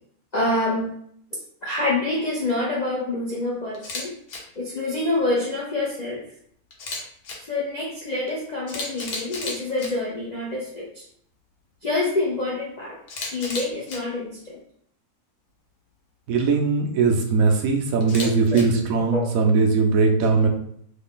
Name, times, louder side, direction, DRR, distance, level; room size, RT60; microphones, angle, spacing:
voice 1, 0.3-0.9 1.6-4.1 4.6-6.2 7.4-11.0 11.8-13.0 13.3-14.6 18.2-18.3 19.1-19.3, left 2 dB, 55° left, -5 dB, 0.4 m, -26 dB
Camera, 3.7-4.0 4.3-4.4 6.7-7.4 8.3-8.4 8.7-9.9 13.1-14.0 18.0-18.6, left 3 dB, 75° left, 1.3 m, -32 dB
voice 2, 16.3-20.5, right 4 dB, 75° right, 3 dB, 1.0 m, -20 dB
3.3 x 2.2 x 3.6 m, 0.66 s
omnidirectional pair, 1.6 m